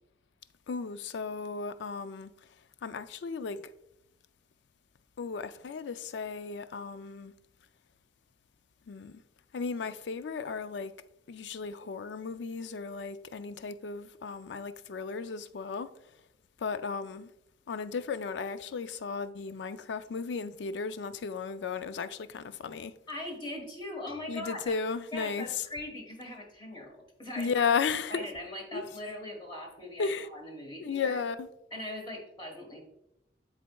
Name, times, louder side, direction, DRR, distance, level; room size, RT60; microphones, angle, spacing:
voice 1, 0.7-2.6 2.8-3.7 5.2-7.3 8.9-9.2 9.5-10.9 11.3-16.2 16.6-17.3 17.7-22.9 24.3-25.7 27.4-28.3 28.7-28.8 30.0-30.3 30.8-31.5, left 5 dB, 90° left, 0.4 m, -35 dB
voice 2, 23.1-24.7 25.1-27.6 28.1-31.2 31.7-32.8, left 1 dB, 30° left, 1.3 m, -40 dB
12.0 x 4.0 x 2.3 m
head